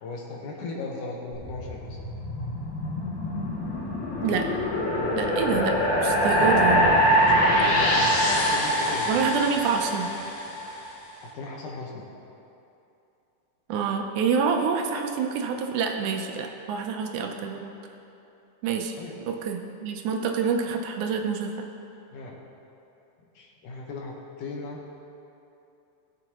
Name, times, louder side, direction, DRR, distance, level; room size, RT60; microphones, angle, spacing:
voice 1, 0.0-2.0 7.0-9.4 11.2-12.1 19.0-19.2 22.1-22.4 23.4-24.8, left 3 dB, 80° left, -1 dB, 2.8 m, -36 dB
sound 1, 1.3-10.7, equal, 65° left, 2.8 m, -24 dB
voice 2, 5.2-6.9 9.1-10.1 13.7-17.7 18.6-18.9 19.3-21.5, right 6 dB, 80° right, 4 dB, 2.2 m, -27 dB
19.5 x 7.1 x 3.0 m, 2.8 s
omnidirectional pair, 3.6 m